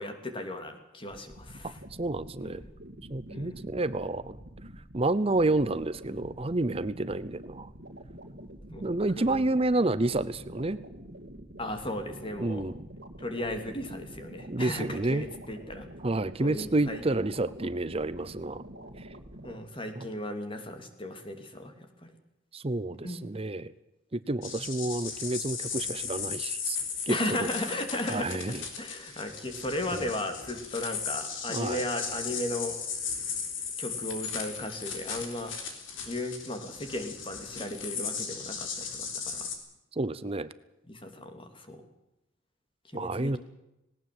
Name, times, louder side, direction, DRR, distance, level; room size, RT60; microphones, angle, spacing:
voice 1, 0.0-1.8 2.4-2.6 3.3-3.6 8.7-8.9 9.2-9.4 11.6-12.7 13.2-15.9 16.4-17.0 19.4-21.7 22.0-22.1 23.0-23.3 24.4-24.5 27.1-32.8 33.8-35.5 36.1-39.5 40.9-41.8 42.9-43.4, left 1 dB, 25° left, 6 dB, 2.9 m, -36 dB
sound 1, 1.1-19.6, right 1 dB, 55° right, 2.3 m, -47 dB
voice 2, 2.0-2.6 3.1-4.4 4.9-7.7 8.8-10.8 12.4-12.9 14.5-15.3 16.0-18.6 19.0-19.1 20.0-20.1 22.5-23.7 24.1-26.8 27.1-27.5 28.1-28.6 29.9-30.1 31.5-31.8 39.9-40.5 42.9-43.4, right 2 dB, 30° right, 15 dB, 0.7 m, -29 dB
sound 2, 24.4-39.6, left 6 dB, 70° left, 3.9 m, -37 dB
19.0 x 18.5 x 7.8 m, 0.90 s
head